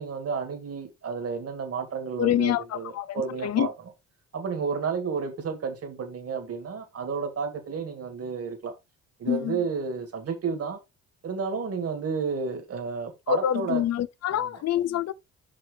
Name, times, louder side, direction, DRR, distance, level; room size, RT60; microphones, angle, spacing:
voice 1, 0.0-3.7 4.3-8.7 9.2-10.8 11.2-13.8 14.3-14.5, right 5 dB, 50° right, 2.1 m, -31 dB
voice 2, 2.2-3.7 9.3-9.6 13.3-15.1, left 11 dB, 55° left, 0.6 m, -26 dB
6.2 x 5.5 x 3.4 m
supercardioid pair, 75°, 31 cm